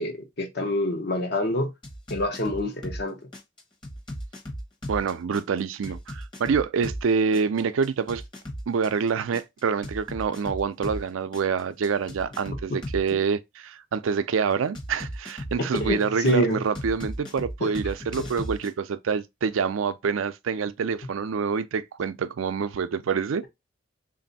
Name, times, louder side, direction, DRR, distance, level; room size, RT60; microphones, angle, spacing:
voice 1, 0.0-1.7 2.1-3.2 15.6-16.6 17.6-17.7 18.2-18.3, left 1 dB, 60° left, 0.9 m, -26 dB
sound 1, 1.8-3.0 3.3-7.0 7.3-11.0 11.3-13.1 14.7-16.3 16.7-18.7, equal, 25° left, 0.9 m, -36 dB
voice 2, 4.9-8.2 8.7-23.4, right 6 dB, 90° right, 0.4 m, -26 dB
3.4 x 2.6 x 4.0 m
head